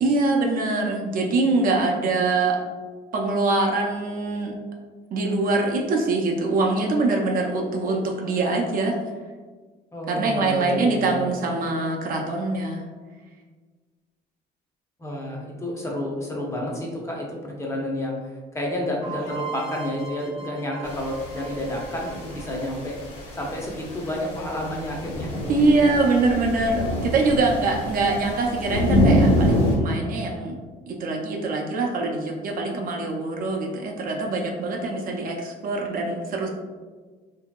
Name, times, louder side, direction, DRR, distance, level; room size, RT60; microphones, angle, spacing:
voice 1, 0.0-2.6 3.1-4.5 5.1-9.0 10.1-12.8 25.5-30.6 30.9-36.5, right 3 dB, 55° right, 1 dB, 0.5 m, -23 dB
voice 2, 9.9-11.3 15.0-18.2 18.5-23.0 23.4-25.3, left 1 dB, 15° left, -2 dB, 0.6 m, -30 dB
sound 1, 19.0-22.8, right 6 dB, 65° left, 0.9 m, -39 dB
sound 2, 20.8-29.7, equal, 90° left, 1.1 m, -26 dB
2.8 x 2.7 x 2.2 m, 1.4 s
cardioid pair, 110°, 17 cm